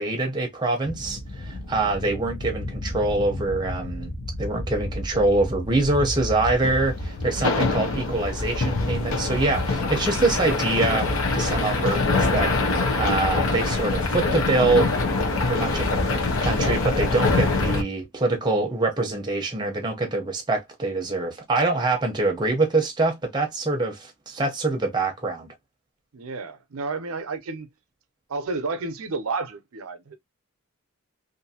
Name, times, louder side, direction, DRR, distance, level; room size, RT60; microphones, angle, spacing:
voice 1, 0.0-4.1 4.4-11.1 11.3-12.7 13.0-14.9 15.5-16.0 16.4-25.5, right 2 dB, 20° right, 0.7 m, -24 dB
sound 1, 0.8-17.8, left 3 dB, 70° left, 0.7 m, -25 dB
voice 2, 26.1-27.7 28.3-30.2, right 3 dB, 80° right, 0.6 m, -31 dB
2.6 x 2.6 x 2.7 m
head